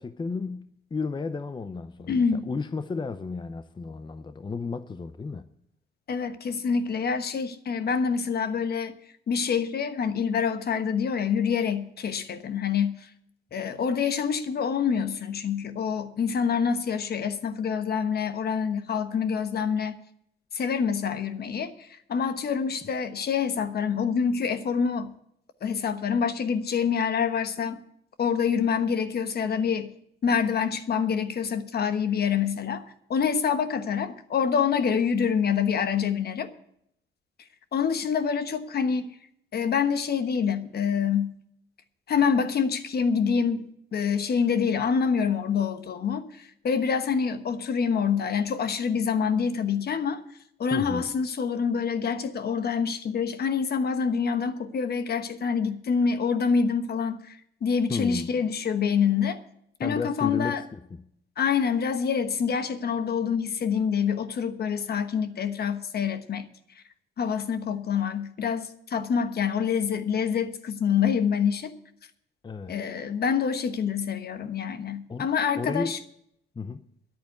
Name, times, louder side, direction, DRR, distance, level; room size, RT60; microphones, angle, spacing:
voice 1, 0.0-5.5 50.7-51.1 57.9-58.4 59.8-60.6 72.4-72.8 75.1-75.3 75.6-75.9 76.6-76.8, left 4 dB, 25° left, 0.6 m, -33 dB
voice 2, 2.1-2.5 6.1-9.0 9.3-13.1 13.5-20.0 20.5-25.1 25.6-27.8 28.2-29.9 30.2-32.8 33.1-36.5 37.7-39.1 39.5-41.3 42.1-50.2 50.6-59.4 59.8-60.6 61.4-66.5 67.2-71.7 72.7-76.0, left 6 dB, 55° left, 1.2 m, -26 dB
10.5 x 8.5 x 9.5 m
cardioid pair, 90°, 20 cm